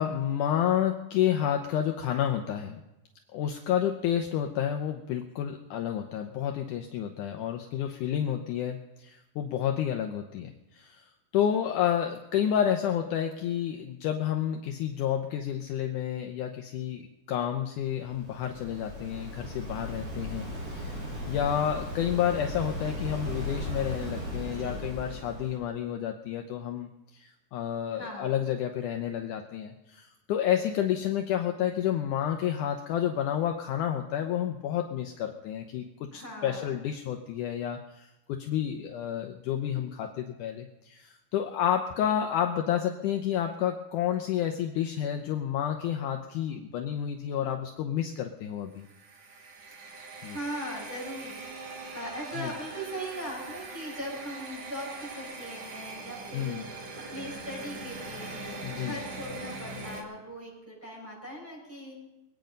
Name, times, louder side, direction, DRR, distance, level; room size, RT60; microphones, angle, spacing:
voice 1, 0.0-2.8 3.3-10.5 10.8-11.0 11.3-21.0 21.3-35.8 36.1-48.8 50.2-50.4 52.4-52.5 56.3-56.7 58.6-59.0, left 10 dB, 75° left, 4 dB, 1.9 m, -30 dB
Waves surf, 17.9-25.6, equal, 75° right, 6.9 m, -37 dB
voice 2, 24.6-24.9 27.9-28.4 36.1-36.8 49.7-62.0, equal, 5° right, -5 dB, 6.4 m, -40 dB
sound 1, 48.8-60.0, right 3 dB, 60° right, 3.0 m, -41 dB
23.5 x 9.0 x 5.3 m, 0.97 s
omnidirectional pair, 4.5 m